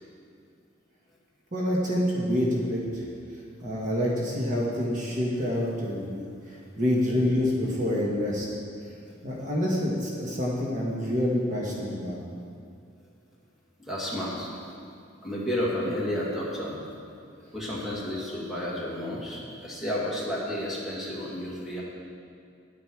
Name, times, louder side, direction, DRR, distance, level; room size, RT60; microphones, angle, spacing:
voice 1, 1.5-3.0 3.6-6.3 6.8-8.5 9.2-12.2, left 1 dB, 45° right, -4 dB, 1.4 m, -27 dB
voice 2, 13.8-14.7 15.2-16.9 17.5-21.8, left 1 dB, ahead, -6 dB, 2.2 m, -31 dB
11.0 x 9.2 x 4.7 m, 2.4 s
head